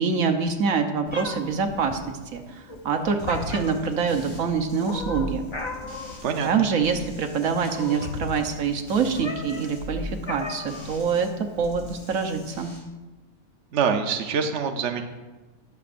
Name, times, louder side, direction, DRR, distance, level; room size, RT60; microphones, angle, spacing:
voice 1, 0.0-5.4 6.4-12.7, right 5 dB, 85° right, 4 dB, 1.4 m, -25 dB
Meow, 1.1-12.7, left 3 dB, 30° left, 0.6 m, -39 dB
sound 1, 3.2-6.5 6.8-11.3 11.6-12.8, left 2 dB, 55° left, 3.9 m, -39 dB
voice 2, 6.2-6.7 13.7-15.0, right 6 dB, 60° right, 5 dB, 1.0 m, -25 dB
20.0 x 7.0 x 2.5 m, 1.2 s
omnidirectional pair, 1.4 m